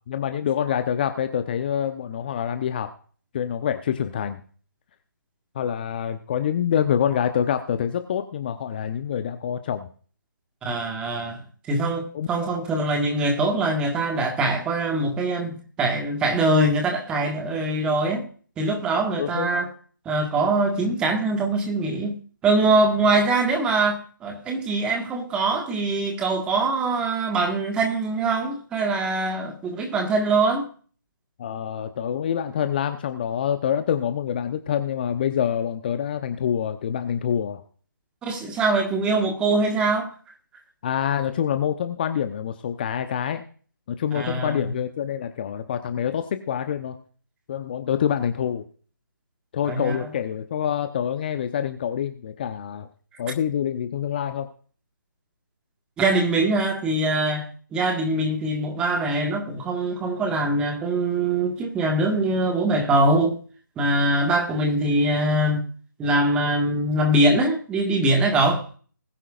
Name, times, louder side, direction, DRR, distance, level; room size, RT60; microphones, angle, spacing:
voice 1, 0.1-2.9 3.3-4.4 5.5-9.9 12.1-12.5 19.2-19.5 31.4-37.6 40.8-43.4 43.9-47.0 47.5-48.6 49.5-52.9 53.2-54.5, left 9 dB, 30° left, 0.8 m, -26 dB
voice 2, 10.6-11.4 11.7-18.3 18.6-19.7 20.0-22.2 22.4-30.7 38.2-40.1 44.1-44.8 49.7-50.0 56.0-63.4 63.8-65.7 66.0-68.6, right 2 dB, 10° right, 1.7 m, -23 dB
20.5 x 9.9 x 2.5 m
figure-of-eight pair, 155°, 11 cm